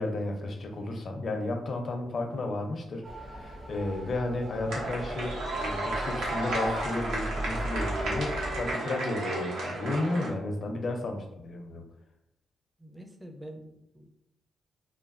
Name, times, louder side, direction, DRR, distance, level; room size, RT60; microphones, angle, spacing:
voice 1, 0.0-11.9, left 2 dB, 50° left, 3 dB, 0.5 m, -33 dB
Motor vehicle (road) / Siren, 3.0-8.7, right 1 dB, 40° right, 0.8 m, -39 dB
sound 1, 4.7-10.3, right 1 dB, 85° right, 0.9 m, -32 dB
voice 2, 12.8-14.1, right 1 dB, 10° right, 3 dB, 0.5 m, -46 dB
3.1 x 2.2 x 2.5 m, 0.84 s
cardioid pair, 85°, 0 cm